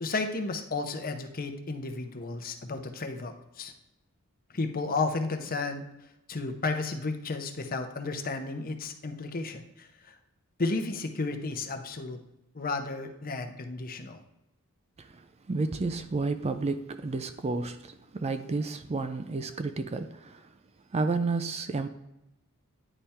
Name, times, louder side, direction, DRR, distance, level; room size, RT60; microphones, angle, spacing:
voice 1, 0.0-3.7 4.5-5.8 6.3-10.1 10.6-12.2 12.5-14.2, left 3 dB, 40° left, 0.8 m, -33 dB
voice 2, 15.0-20.5 20.9-21.9, right 3 dB, 30° right, 0.4 m, -31 dB
9.9 x 3.4 x 4.3 m
head